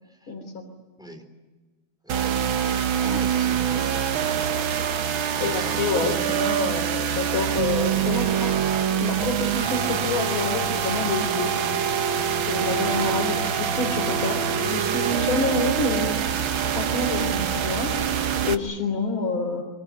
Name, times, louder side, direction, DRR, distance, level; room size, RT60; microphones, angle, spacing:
voice 1, 0.3-0.7 5.4-8.7 9.0-11.5 12.5-16.2 16.8-17.9 18.4-19.6, left 3 dB, 85° left, 1 dB, 4.2 m, -27 dB
voice 2, 2.0-2.4 3.0-4.1 5.4-6.3 13.3-13.5, equal, ahead, 4 dB, 3.9 m, -38 dB
sound 1, 2.1-18.5, right 8 dB, 80° right, 2.0 m, -25 dB
25.0 x 24.0 x 9.9 m, 1.2 s
omnidirectional pair, 2.2 m